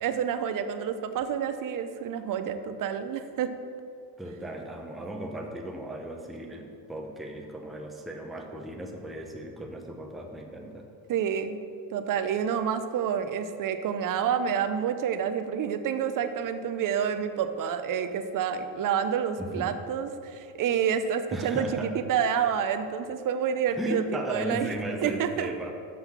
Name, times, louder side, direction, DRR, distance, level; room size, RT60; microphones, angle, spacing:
voice 1, 0.0-3.5 11.1-11.6 11.9-24.7 25.0-25.5, right 8 dB, 45° right, 9 dB, 0.6 m, -28 dB
voice 2, 4.2-10.9 19.4-19.7 21.3-22.0 23.8-25.7, right 1 dB, ahead, 1 dB, 0.6 m, -36 dB
6.4 x 6.0 x 5.7 m, 2.5 s
cardioid pair, 105°, 47 cm